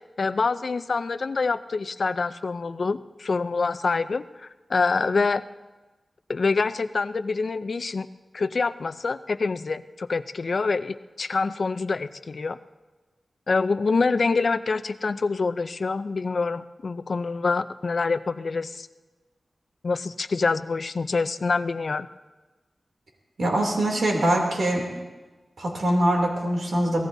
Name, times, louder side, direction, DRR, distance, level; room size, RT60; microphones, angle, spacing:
voice 1, 0.2-5.4 6.3-8.1 8.3-12.6 13.5-18.9 19.8-22.1, left 4 dB, 60° left, 11 dB, 0.5 m, -26 dB
voice 2, 23.4-24.8 25.6-27.1, right 1 dB, 85° right, 0 dB, 2.8 m, -23 dB
23.5 x 17.0 x 2.7 m, 1.2 s
wide cardioid pair, 95°, 0 cm